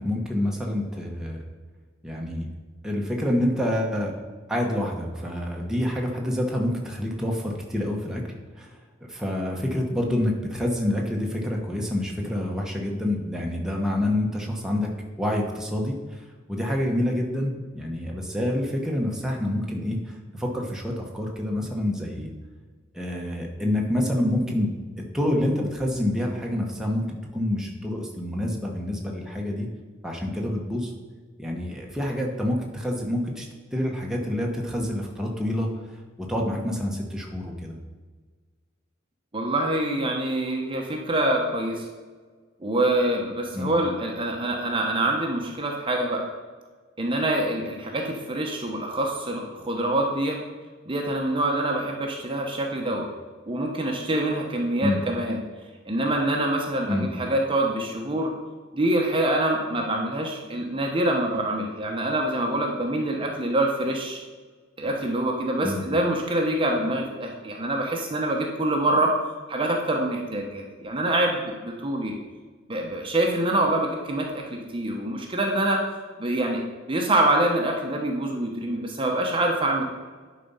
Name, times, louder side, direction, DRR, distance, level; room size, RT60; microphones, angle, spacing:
voice 1, 0.0-1.4 2.0-2.5 2.8-4.1 4.5-8.2 8.6-8.7 9.1-14.9 15.2-22.3 22.9-29.7 30.0-30.9 31.4-33.5 33.7-35.7 36.2-37.8 43.5-43.7 54.8-55.0 56.9-57.1 65.6-65.8, left 1 dB, 5° right, -1 dB, 1.1 m, -27 dB
voice 2, 39.3-41.9 42.6-46.2 47.0-50.4 50.9-53.1 53.5-55.4 55.8-58.3 58.7-64.2 64.8-69.1 69.5-72.1 72.7-75.8 76.2-76.6 76.9-79.8, right 1 dB, 25° right, 0 dB, 0.9 m, -25 dB
10.5 x 4.2 x 5.5 m, 1.4 s
head